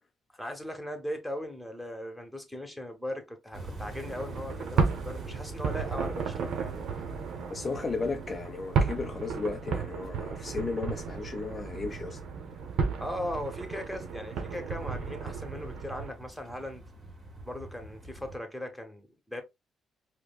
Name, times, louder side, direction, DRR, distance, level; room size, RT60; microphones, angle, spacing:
voice 1, 0.3-7.0 13.0-16.8 17.4-19.4, left 1 dB, ahead, 1.2 m, -38 dB
sound 1, 3.5-18.4, right 1 dB, 35° right, 1.9 m, -47 dB
sound 2, 3.9-16.1, right 5 dB, 75° right, 0.8 m, -33 dB
voice 2, 7.5-12.2, left 4 dB, 35° left, 0.5 m, -34 dB
4.9 x 2.2 x 2.3 m
cardioid pair, 85°, 0 cm